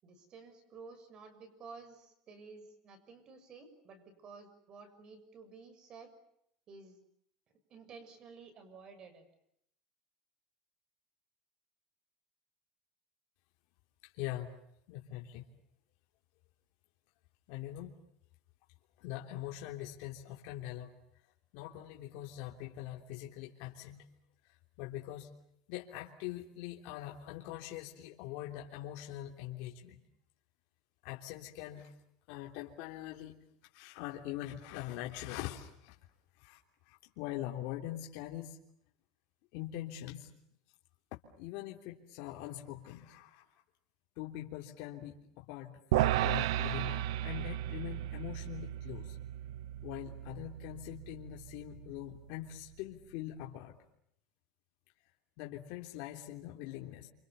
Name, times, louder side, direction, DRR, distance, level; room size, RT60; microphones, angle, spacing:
voice 1, 0.0-6.1 6.7-7.0 7.7-9.2, right 4 dB, 30° right, 8 dB, 6.8 m, -53 dB
voice 2, 14.1-14.5 14.9-15.4 17.5-17.9 19.0-20.9 21.5-24.0 24.8-25.3 25.7-30.0 31.0-31.9 32.3-33.4 33.7-35.9 36.4-36.6 36.9-38.6 39.5-40.3 41.4-43.4 44.2-49.2 49.8-53.7 55.4-57.1, left 13 dB, 60° left, 0 dB, 3.4 m, -43 dB
sound 1, 45.9-52.3, right 13 dB, 85° right, 1.0 m, -35 dB
28.5 x 27.5 x 6.9 m, 0.75 s
cardioid pair, 160°, 3 cm